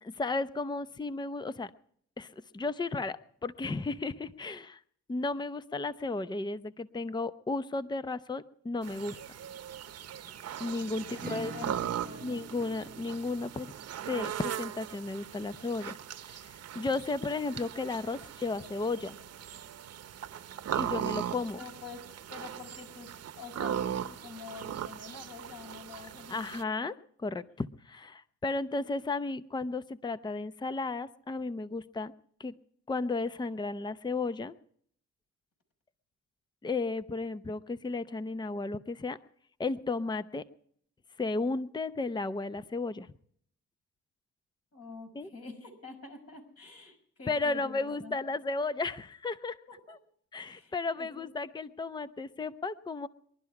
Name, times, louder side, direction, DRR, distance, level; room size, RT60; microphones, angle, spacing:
voice 1, 0.0-1.7 2.2-4.8 5.1-9.2 10.6-11.5 12.2-13.7 14.1-16.0 16.3-19.2 20.7-21.6 26.3-26.9 27.2-32.1 32.4-32.6 32.9-34.5 36.6-39.2 39.6-40.4 41.2-43.1 45.1-45.3 47.3-49.6 49.9-50.0 50.3-53.1, left 3 dB, 15° left, 13 dB, 0.7 m, -34 dB
sound 1, 8.8-26.6, right 9 dB, 55° right, 1.0 m, -39 dB
voice 2, 11.1-12.4 21.6-22.0 22.3-26.6 44.7-48.2 49.7-50.0 50.4-51.3, left 4 dB, 50° left, 3 dB, 6.0 m, -46 dB
Acoustic guitar / Strum, 11.2-16.6, right 5 dB, 30° right, 0.9 m, -49 dB
sound 2, 18.5-22.0, left 5 dB, 85° left, 4.4 m, -64 dB
22.5 x 12.0 x 4.8 m, 0.65 s
cardioid pair, 90°, 30 cm